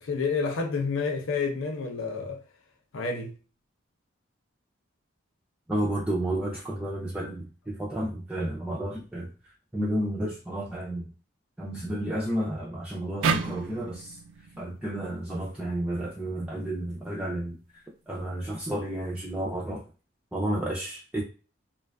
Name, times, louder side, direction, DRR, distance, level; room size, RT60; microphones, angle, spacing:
voice 1, 0.0-2.4 2.9-3.3, left 4 dB, 85° left, 0.5 m, -29 dB
voice 2, 5.7-9.3 9.7-11.1 11.6-14.2 14.6-17.6 18.1-19.8 20.3-21.2, right 1 dB, 5° right, 0.3 m, -31 dB
sound 1, 13.2-16.5, right 5 dB, 90° right, 0.3 m, -32 dB
2.4 x 2.3 x 2.2 m
head